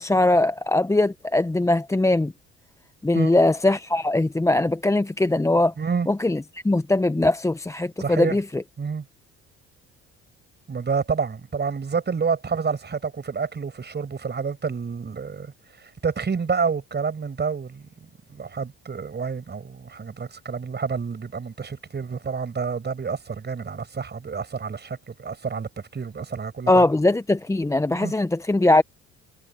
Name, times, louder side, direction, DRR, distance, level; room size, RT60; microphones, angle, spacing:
voice 1, 0.0-2.3 3.0-5.7 6.1-8.6 26.7-28.8, left 2 dB, 10° left, 0.8 m, -21 dB
voice 2, 5.8-6.1 8.0-8.4 8.8-9.0 10.7-15.5 15.8-17.9 18.3-26.9 27.9-28.1, right 5 dB, 35° right, 6.1 m, -28 dB
hypercardioid pair, 65°, 31 cm